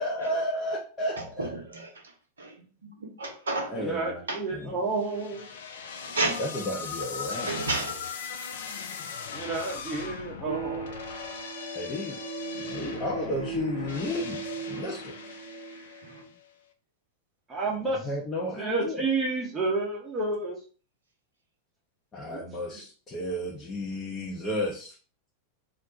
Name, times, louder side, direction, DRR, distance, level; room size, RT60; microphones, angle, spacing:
voice 1, 0.0-1.5 3.7-4.2 4.5-4.8 6.4-7.6 11.7-12.2 12.5-14.4 14.7-15.1 18.0-19.0 22.1-24.9, left 1 dB, 25° left, 0.7 m, -32 dB
voice 2, 1.4-1.9 2.4-3.7 4.3-4.4 6.0-6.4 7.5-8.0, right 2 dB, 70° right, 0.7 m, -31 dB
voice 3, 3.8-5.5 9.3-10.9 17.5-18.1 18.6-20.6 22.2-22.4 22.7-22.8, right 3 dB, 15° right, 0.8 m, -30 dB
sound 1, 5.0-16.3, left 6 dB, 60° left, 0.4 m, -39 dB
sound 2, 10.5-16.2, right 6 dB, 80° left, 0.8 m, -38 dB
2.5 x 2.2 x 3.9 m
figure-of-eight pair, 90°, 0 cm